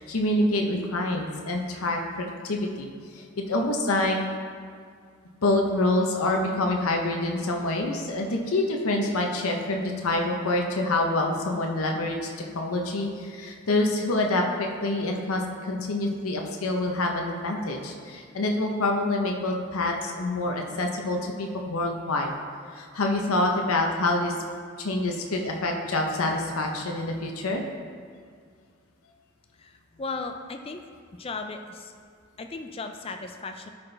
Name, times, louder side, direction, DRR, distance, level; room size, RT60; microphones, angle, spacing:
voice 1, 0.0-2.9 3.1-4.2 5.4-12.3 12.5-22.3 22.7-24.3 24.8-27.6, left 2 dB, 90° left, 2 dB, 0.7 m, -26 dB
voice 2, 29.6-30.8 31.2-31.9 32.4-33.7, left 3 dB, 25° left, 6 dB, 0.3 m, -36 dB
11.5 x 4.3 x 3.3 m, 2.1 s
head